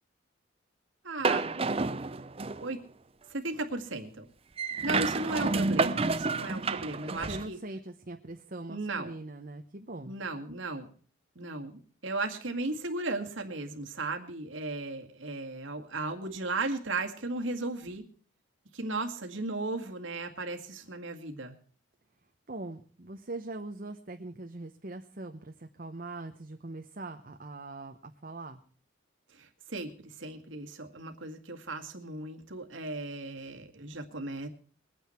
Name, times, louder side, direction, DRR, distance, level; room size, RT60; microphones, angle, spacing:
voice 1, 1.0-1.6 2.6-2.8 3.3-4.2 4.8-7.6 8.7-9.1 10.1-10.9 11.4-18.1 18.7-21.5 29.3-34.5, right 2 dB, 75° right, 4 dB, 2.1 m, -36 dB
sound 1, 1.2-2.7 4.6-7.5, right 3 dB, 30° right, 0.6 m, -29 dB
voice 2, 7.1-10.2 22.5-28.6, right 2 dB, 45° right, 5 dB, 1.0 m, -42 dB
22.0 x 9.4 x 4.5 m, 0.43 s
head